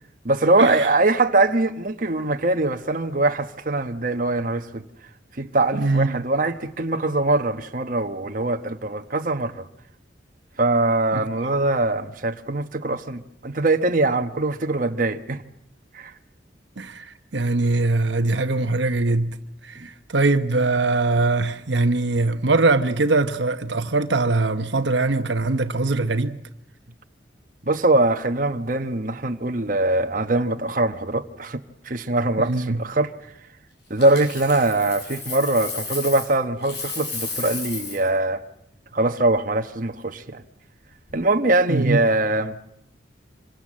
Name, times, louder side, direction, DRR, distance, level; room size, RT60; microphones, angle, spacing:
voice 1, 0.2-4.8 5.3-9.6 10.6-15.4 15.9-16.1 19.8-19.9 27.6-33.1 33.9-38.4 38.9-40.4 41.1-42.6, right 2 dB, 45° right, 1.2 m, -22 dB
voice 2, 5.7-6.2 11.1-11.3 16.8-19.4 19.6-26.4 32.4-32.8 41.7-42.0, right 3 dB, 75° right, 1.0 m, -22 dB
Coin (dropping), 34.0-36.4 36.6-38.1 40.9-41.1, left 4 dB, 60° left, 7.7 m, -33 dB
26.5 x 23.5 x 7.5 m
head